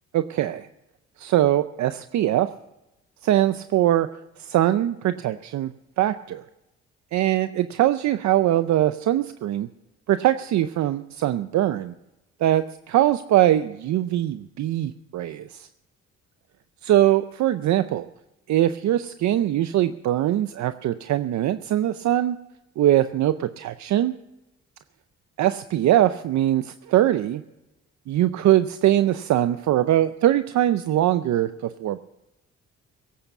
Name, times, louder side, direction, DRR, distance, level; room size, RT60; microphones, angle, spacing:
voice 1, 0.1-0.7 1.2-2.5 3.2-4.1 4.4-5.7 6.0-6.4 7.1-9.7 10.1-11.9 12.4-15.7 16.9-18.1 18.5-22.4 22.8-24.1 25.4-27.4 28.1-32.0, right 13 dB, 65° right, 12 dB, 0.6 m, -22 dB
17.5 x 8.6 x 7.0 m, 0.95 s
cardioid pair, 90°, 30 cm